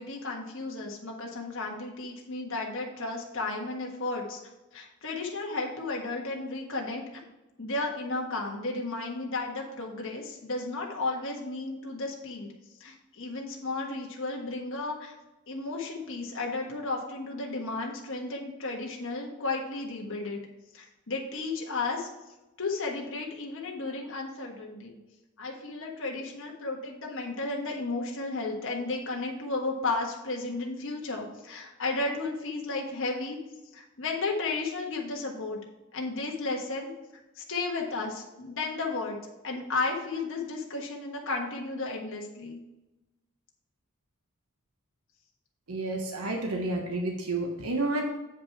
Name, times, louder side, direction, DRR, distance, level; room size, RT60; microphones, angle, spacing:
voice 1, 0.0-4.4 4.7-7.0 7.6-12.5 12.8-15.1 15.5-20.4 20.7-22.1 22.6-25.0 25.4-33.4 33.7-35.6 35.9-36.9 37.3-39.2 39.4-42.6, left 3 dB, 60° left, 0 dB, 1.4 m, -33 dB
voice 2, 45.7-48.0, right 2 dB, 85° right, 1 dB, 1.2 m, -30 dB
8.5 x 5.2 x 4.6 m, 1.0 s
head